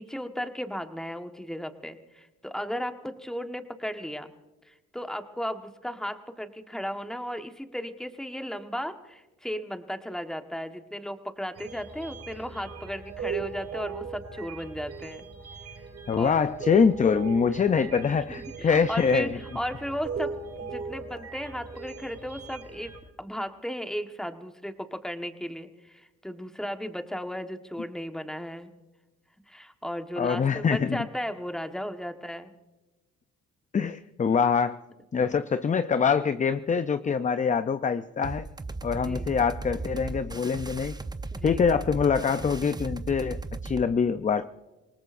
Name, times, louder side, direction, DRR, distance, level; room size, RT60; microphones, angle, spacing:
voice 1, 0.0-4.3 4.6-15.3 16.1-16.7 18.0-18.2 18.6-22.9 23.2-28.7 29.5-32.5 38.9-39.3 41.3-41.8, equal, ahead, 6 dB, 1.3 m, -35 dB
sound 1, 11.6-23.0, right 5 dB, 60° right, 6.0 m, -38 dB
voice 2, 16.1-19.4 30.2-31.0 33.7-34.8 35.1-38.5 38.8-41.0 41.4-44.5, left 6 dB, 25° left, 12 dB, 0.5 m, -24 dB
sound 2, 38.2-43.8, right 3 dB, 15° right, 0.7 m, -36 dB
27.0 x 18.5 x 2.6 m, 1.1 s
cardioid pair, 90°, 30 cm